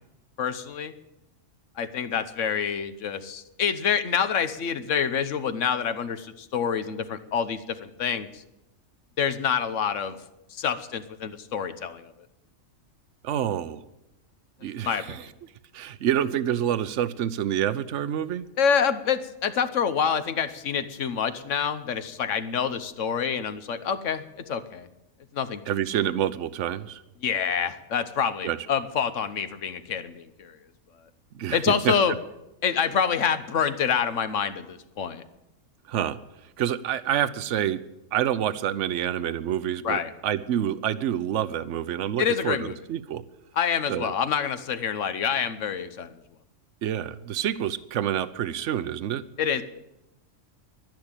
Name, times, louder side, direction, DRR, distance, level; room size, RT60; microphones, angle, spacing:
voice 1, 0.4-0.9 1.8-8.4 9.2-10.2 10.5-12.1 14.8-15.3 18.6-24.9 25.3-25.6 27.2-30.6 31.5-32.1 32.6-35.2 39.8-40.1 42.2-42.8 43.6-46.1 49.4-49.6, left 7 dB, 70° left, 11 dB, 1.3 m, -27 dB
voice 2, 13.2-13.8 14.6-15.2 15.7-18.4 25.7-27.0 28.4-28.6 31.3-31.9 35.9-36.2 36.6-37.8 38.1-43.2 43.9-44.1 46.8-49.2, right 10 dB, 70° right, 15 dB, 1.0 m, -27 dB
11.5 x 10.5 x 8.9 m, 0.91 s
omnidirectional pair, 1.3 m